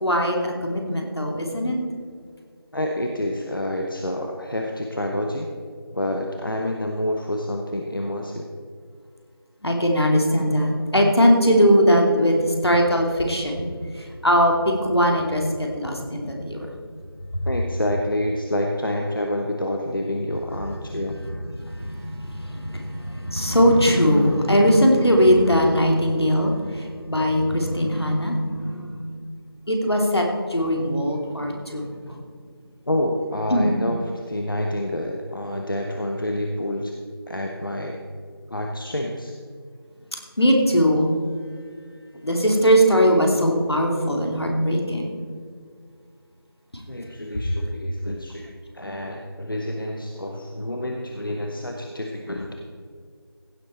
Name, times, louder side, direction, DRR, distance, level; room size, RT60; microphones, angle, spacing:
voice 1, 0.0-1.8 9.6-13.7 14.0-16.7 21.6-29.2 29.7-31.9 33.5-33.7 40.4-41.1 42.2-45.1, equal, 80° left, 1 dB, 2.7 m, -20 dB
voice 2, 2.7-5.5 5.9-8.5 17.5-21.2 32.9-34.0 34.3-36.9 37.3-38.0 38.5-39.3 46.9-52.5, left 1 dB, 55° left, 2 dB, 1.1 m, -28 dB
16.0 x 7.8 x 4.3 m, 2.1 s
figure-of-eight pair, 175°, 13 cm